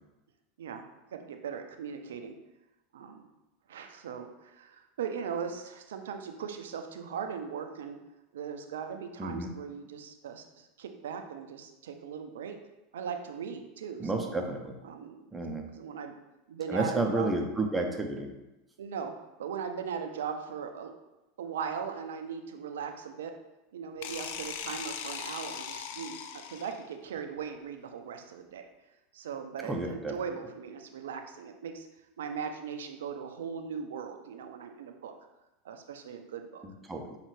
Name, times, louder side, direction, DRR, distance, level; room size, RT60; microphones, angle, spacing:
voice 1, 1.1-2.4 2.9-3.2 3.7-8.0 8.3-12.6 12.9-14.3 14.8-15.4 15.7-16.2 16.5-17.3 18.8-19.1 19.4-20.9 21.4-23.3 23.7-28.7 29.1-31.9 32.2-35.1 35.6-36.6, right 7 dB, 75° right, 6 dB, 0.4 m, -39 dB
voice 2, 9.2-9.5 14.0-14.8 15.3-15.7 16.7-18.3 29.6-30.1 36.6-37.2, right 2 dB, 10° right, 3 dB, 0.7 m, -31 dB
sound 1, 24.0-26.9, left 8 dB, 65° left, 0.3 m, -39 dB
5.5 x 2.4 x 3.2 m, 0.99 s
hypercardioid pair, 85°, 0 cm